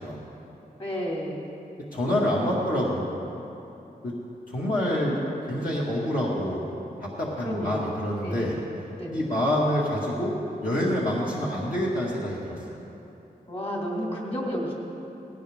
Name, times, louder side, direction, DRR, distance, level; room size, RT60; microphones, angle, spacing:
voice 1, 0.8-1.5 4.7-5.1 7.4-7.9 8.2-8.6 9.0-9.2 13.5-14.7, equal, 40° left, -3 dB, 2.9 m, -32 dB
voice 2, 1.9-3.1 4.0-4.1 4.5-5.2 5.5-6.6 7.0-8.6 9.1-10.3 10.6-12.8, left 1 dB, 60° left, -6 dB, 2.1 m, -27 dB
18.5 x 16.5 x 3.7 m, 2.9 s
wide cardioid pair, 135°, 16 cm